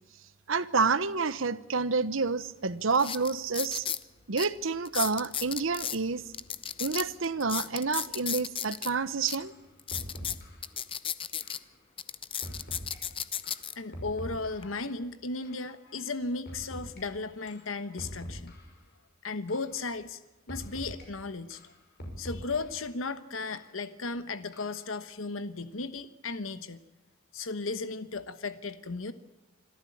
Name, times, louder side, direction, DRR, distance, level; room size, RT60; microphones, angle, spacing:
voice 1, 0.5-3.9 4.3-6.2 6.8-9.5, right 4 dB, 75° right, 1.0 m, -29 dB
sound 1, 2.3-2.4 2.9-4.0 4.4-4.5 4.8-6.0 6.3-8.9 9.3-9.4 9.8-11.6 12.0-13.7 14.4-14.6, left 8 dB, 25° left, 0.7 m, -34 dB
sound 2, 8.9-9.0 9.4-9.6 9.9-10.7 11.4-11.6 12.4-13.0 13.4-14.8 15.4-15.6 16.4-17.0 17.5-17.7 18.0-18.8 19.5-19.7 20.5-21.0 21.5-22.8 23.5-23.7 24.5-24.9, equal, 55° left, 6.2 m, -43 dB
voice 2, 13.8-18.5 19.2-20.2 20.5-21.7 22.2-26.8 27.3-29.1, left 3 dB, 85° left, 1.2 m, -35 dB
25.5 x 13.5 x 8.7 m
head